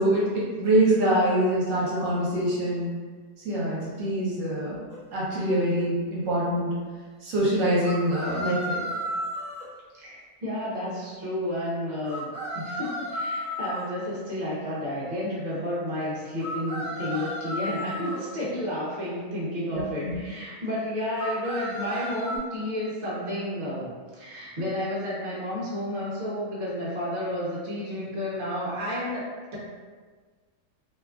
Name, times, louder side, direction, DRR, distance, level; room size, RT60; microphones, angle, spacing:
voice 1, 0.0-2.9 3.4-4.8 5.1-6.7 7.2-8.8 19.7-20.2, right 1 dB, 65° right, -6 dB, 1.0 m, -24 dB
sound 1, 4.9-5.0 7.8-9.7 12.0-13.8 16.4-18.2 21.1-22.4, equal, 5° left, 0.5 m, -33 dB
voice 2, 9.9-29.3, left 1 dB, 45° right, -7 dB, 0.6 m, -31 dB
2.9 x 2.3 x 2.3 m, 1.5 s
omnidirectional pair, 1.6 m